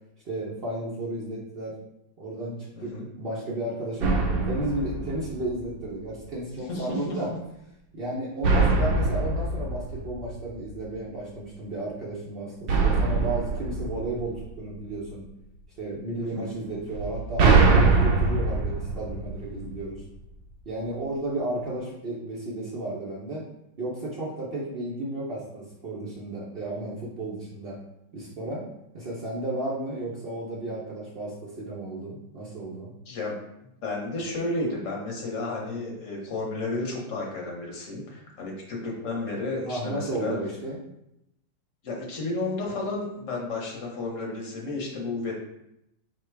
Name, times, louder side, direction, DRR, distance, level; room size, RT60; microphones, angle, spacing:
voice 1, 0.2-1.7 2.2-2.9 3.2-4.1 4.5-7.3 7.9-15.2 15.8-20.0 20.7-23.4 23.8-27.8 28.1-28.6 28.9-32.9 39.6-40.8, right 1 dB, 60° right, -7 dB, 0.6 m, -33 dB
voice 2, 2.7-3.1 6.7-7.2 8.5-8.6 16.2-16.5 33.1-33.4 33.8-40.4 41.8-45.4, left 2 dB, 50° left, -1 dB, 1.2 m, -32 dB
sound 1, 4.0-5.9 8.4-10.8 12.7-14.9 16.9-20.0, right 3 dB, 80° right, 1.3 m, -23 dB
4.4 x 2.2 x 4.6 m, 0.82 s
omnidirectional pair, 2.1 m